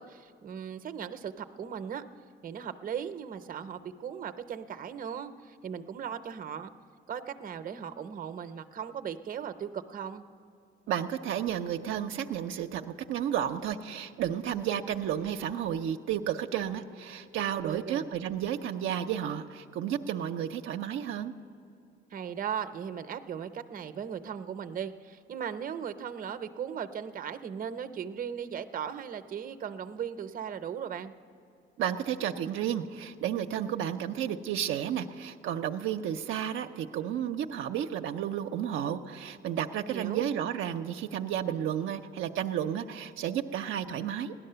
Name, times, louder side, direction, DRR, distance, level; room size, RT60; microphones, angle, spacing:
voice 1, 0.0-2.0 2.4-6.7 7.1-10.2 17.5-18.1 22.1-31.1 39.9-40.2, right 8 dB, 45° right, 9 dB, 0.6 m, -37 dB
voice 2, 10.9-21.3 31.8-44.3, right 10 dB, 85° right, 5 dB, 0.5 m, -32 dB
16.5 x 11.0 x 6.8 m, 2.6 s
cardioid pair, 90°, 20 cm